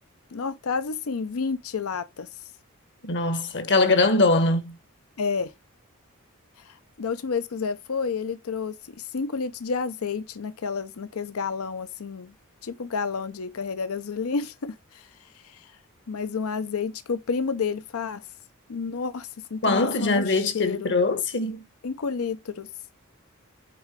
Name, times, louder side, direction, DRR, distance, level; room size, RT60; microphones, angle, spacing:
voice 1, 0.3-2.3 5.2-5.5 6.7-12.3 12.6-15.1 15.4-15.7 16.1-18.2 18.7-20.9 21.8-22.7, left 5 dB, 70° left, 0.6 m, -30 dB
voice 2, 3.0-4.8 19.6-21.6, left 3 dB, 55° left, 1.2 m, -22 dB
8.4 x 3.7 x 3.2 m
head